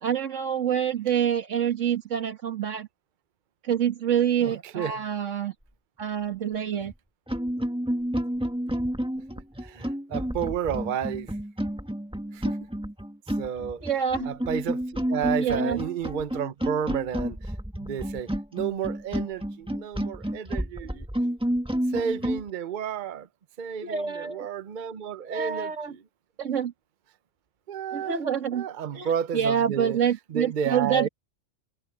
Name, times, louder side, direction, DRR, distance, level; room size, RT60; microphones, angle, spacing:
voice 1, 0.0-2.9 3.6-5.5 6.0-6.9 13.8-14.3 15.4-15.8 23.8-24.5 25.3-25.9 26.4-26.7 27.9-28.7 28.9-31.1, right 8 dB, 80° right, 1.9 m, -27 dB
voice 2, 4.4-5.0 9.6-11.4 12.3-12.6 13.4-13.8 14.2-17.5 17.8-21.1 21.9-23.3 23.6-26.0 27.7-28.2 28.5-30.0 30.3-31.1, right 8 dB, 45° right, 0.8 m, -31 dB
sound 1, 6.8-6.9 7.3-22.4, equal, 5° right, 1.7 m, -30 dB
omnidirectional pair, 1.3 m